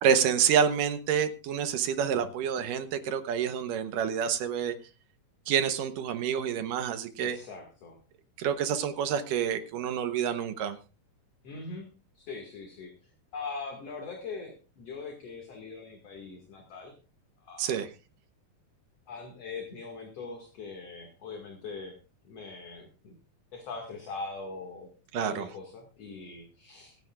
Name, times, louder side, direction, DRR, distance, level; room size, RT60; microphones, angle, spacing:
voice 1, 0.0-4.7 5.5-7.4 8.4-10.8 17.6-17.9 25.1-25.5, right 8 dB, 75° right, 10 dB, 2.5 m, -28 dB
voice 2, 7.2-8.0 11.4-11.9 12.1-16.9 17.4-17.8 19.1-21.9 22.2-23.1 23.5-27.0, left 4 dB, 50° left, 2 dB, 2.9 m, -41 dB
24.5 x 10.5 x 2.4 m, 0.33 s
omnidirectional pair, 4.0 m